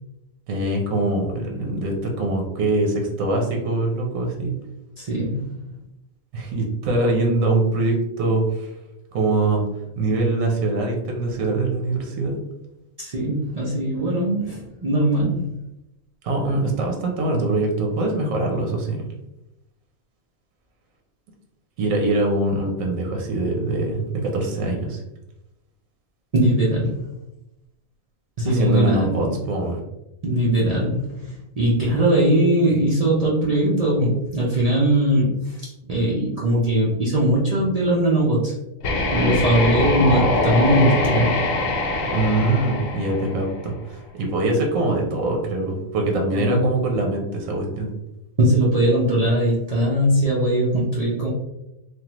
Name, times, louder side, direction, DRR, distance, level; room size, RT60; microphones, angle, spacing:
voice 1, 0.5-4.5 6.3-8.7 9.1-9.6 10.0-12.4 16.2-19.0 21.8-25.0 28.4-29.8 42.1-47.9, right 2 dB, 85° right, 1 dB, 1.1 m, -23 dB
voice 2, 5.0-5.6 13.0-15.5 26.3-27.0 28.4-29.3 30.2-35.6 35.9-38.5 39.1-41.4 46.3-46.6 48.4-51.3, right 1 dB, 50° right, -6 dB, 0.5 m, -20 dB
sound 1, 38.8-43.7, left 2 dB, 80° left, 1.0 m, -23 dB
3.2 x 2.2 x 2.9 m, 0.91 s
omnidirectional pair, 1.4 m